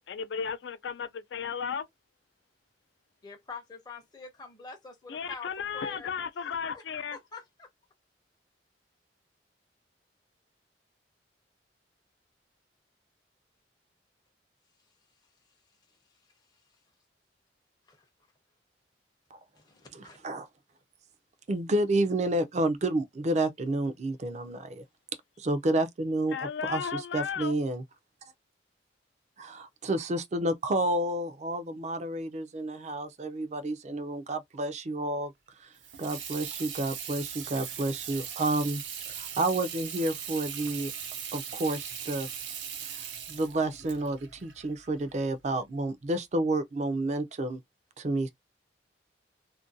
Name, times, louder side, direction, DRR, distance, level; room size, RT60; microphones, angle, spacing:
voice 1, 0.1-1.9 5.1-7.2 26.3-27.6, left 6 dB, 75° left, 0.4 m, -34 dB
voice 2, 3.2-6.1 6.7-6.8 7.1-7.7 17.9-18.1 19.6-20.2, left 4 dB, 20° left, 0.6 m, -45 dB
voice 3, 19.9-20.5 21.5-24.8 25.4-27.8 29.4-35.3 35.6-35.7 36.0-38.8 39.1-40.9 41.3-42.3 42.8-47.6 48.0-48.3, right 2 dB, 40° right, 0.4 m, -30 dB
Water tap faucet / Sink (filling or washing), 35.7-45.3, right 8 dB, 80° right, 0.6 m, -39 dB
2.5 x 2.2 x 2.5 m
head